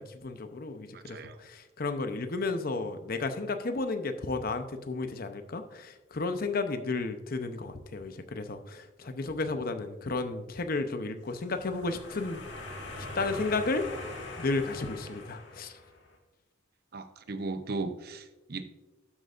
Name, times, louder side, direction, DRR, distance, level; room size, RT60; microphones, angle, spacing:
voice 1, 0.0-12.4 12.8-13.9 14.4-15.7, left 3 dB, 50° left, 8 dB, 0.7 m, -33 dB
voice 2, 0.9-1.4 16.9-18.6, right 3 dB, 55° right, 9 dB, 0.7 m, -37 dB
sound 1, 11.3-16.1, left 2 dB, 70° left, 1.8 m, -42 dB
12.0 x 7.9 x 2.5 m, 1.1 s
head